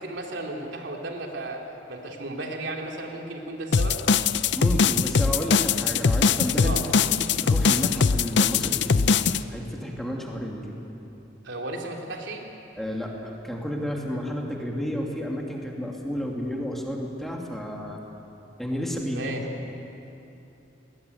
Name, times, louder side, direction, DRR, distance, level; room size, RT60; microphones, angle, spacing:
voice 1, 0.0-1.6 1.9-4.0 6.6-6.8 11.4-12.4 19.1-19.4, right 2 dB, 75° right, 1 dB, 3.2 m, -34 dB
sound 1, 3.7-9.4, left 5 dB, 65° left, 0.6 m, -21 dB
voice 2, 4.5-10.8 12.8-18.0 18.6-19.3, equal, ahead, -1 dB, 2.8 m, -31 dB
21.0 x 19.5 x 9.5 m, 2.9 s
head